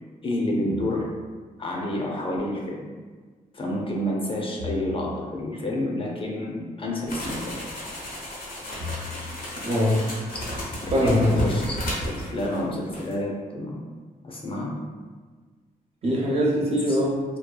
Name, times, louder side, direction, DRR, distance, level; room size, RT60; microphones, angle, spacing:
voice 1, 0.2-1.2 1.6-2.9 3.5-7.6 10.8-13.8 14.2-14.9 16.8-17.0, left 1 dB, 35° left, -2 dB, 0.5 m, -29 dB
sound 1, 0.7-1.5 4.6-5.7 8.8-9.7, left 4 dB, 80° right, 0.4 m, -39 dB
sound 2, 7.1-12.7 12.9-13.1, equal, 90° left, 0.9 m, -33 dB
voice 2, 9.6-10.0 10.9-11.3 16.0-17.2, equal, 40° right, -4 dB, 0.6 m, -22 dB
2.7 x 2.3 x 2.2 m, 1.4 s
cardioid pair, 90°, 15 cm